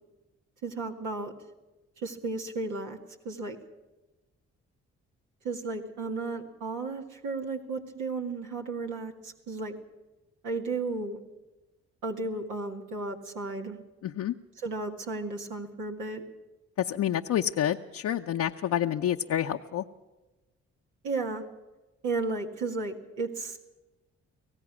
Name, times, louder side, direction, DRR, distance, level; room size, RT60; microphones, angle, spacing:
voice 1, 0.6-1.3 2.0-3.0 3.3-3.6 5.4-9.7 10.4-11.2 12.0-13.8 14.6-16.2 21.0-21.4 22.0-23.6, right 3 dB, 80° right, 1 dB, 2.1 m, -34 dB
voice 2, 14.0-14.3 16.8-19.8, left 10 dB, 65° left, 3 dB, 0.8 m, -28 dB
25.5 x 17.0 x 6.2 m, 1.1 s
supercardioid pair, 50°, 30 cm